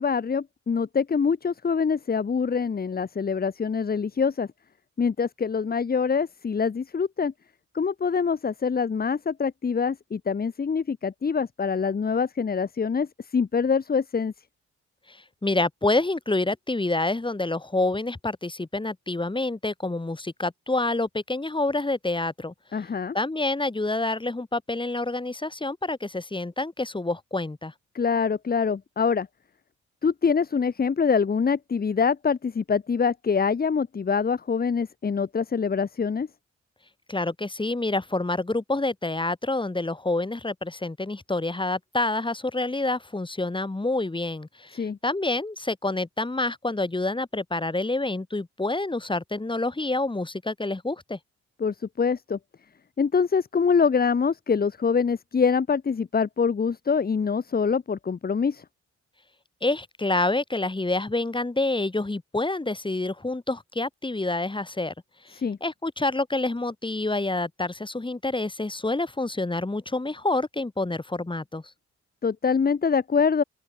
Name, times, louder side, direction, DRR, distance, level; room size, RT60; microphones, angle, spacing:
voice 1, 0.0-4.5 5.0-7.3 7.7-13.1 13.3-14.3 22.7-23.1 27.9-29.3 30.0-36.3 44.7-45.0 51.6-52.4 53.0-58.6 65.3-65.6 72.2-73.4, left 5 dB, 30° left, 1.1 m, -24 dB
voice 2, 15.4-22.5 23.1-27.7 37.1-51.2 59.6-64.9 65.3-71.6, left 2 dB, 15° left, 6.8 m, -27 dB
open air
cardioid pair, 100°, 30 cm